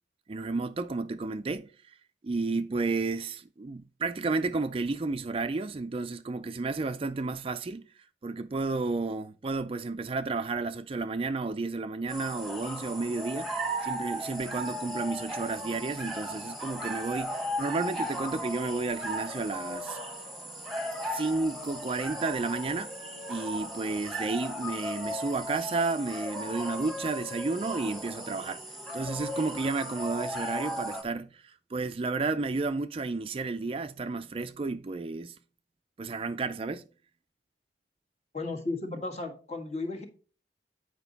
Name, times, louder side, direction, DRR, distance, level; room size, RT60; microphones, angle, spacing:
voice 1, 0.3-2.0 2.2-13.5 13.8-20.0 21.1-23.0 23.3-35.4 36.0-36.8, right 3 dB, 30° right, 0.4 m, -32 dB
sound 1, 12.1-31.0, equal, ahead, 1.4 m, -36 dB
voice 2, 38.3-40.1, left 3 dB, 40° left, 1.6 m, -34 dB
9.0 x 5.2 x 4.0 m
head